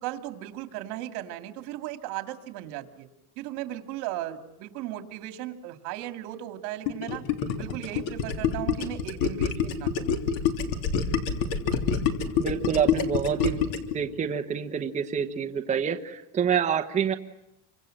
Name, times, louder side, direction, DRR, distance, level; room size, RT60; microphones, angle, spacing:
voice 1, 0.0-3.1 3.4-7.2 7.6-10.2, right 14 dB, 65° right, 7 dB, 2.6 m, -36 dB
Gurgling, 6.9-13.9, left 7 dB, 55° left, 3.4 m, -26 dB
voice 2, 12.4-17.1, right 7 dB, 15° right, 4 dB, 1.0 m, -27 dB
30.0 x 25.5 x 7.8 m, 0.89 s
cardioid pair, 170°, 41 cm